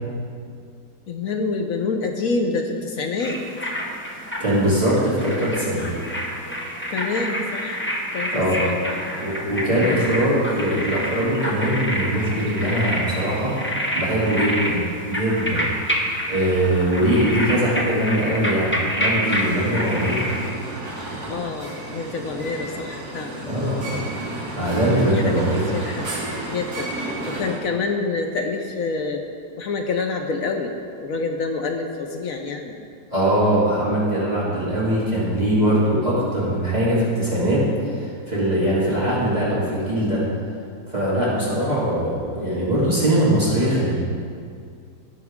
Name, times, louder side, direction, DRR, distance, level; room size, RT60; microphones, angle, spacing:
voice 1, 1.1-3.4 6.9-7.8 8.1-9.2 9.7-10.1 14.6-14.9 21.3-24.0 24.9-25.4 25.7-26.1 26.5-29.2 29.6-30.7 31.0-32.8 38.6-39.1, left 4 dB, 65° left, 4 dB, 1.0 m, -27 dB
sound 1, 3.2-20.5, equal, 10° left, 0.8 m, -28 dB
voice 2, 4.4-5.9 8.3-8.6 9.2-13.5 13.9-15.7 16.3-20.2 23.4-24.0 24.5-25.6 33.1-37.6 37.9-40.2 40.9-43.9, right 1 dB, 25° right, -9 dB, 2.4 m, -21 dB
sound 2, 19.2-27.6, right 2 dB, 60° right, 2.0 m, -32 dB
16.5 x 6.1 x 3.6 m, 2.2 s
omnidirectional pair, 1.9 m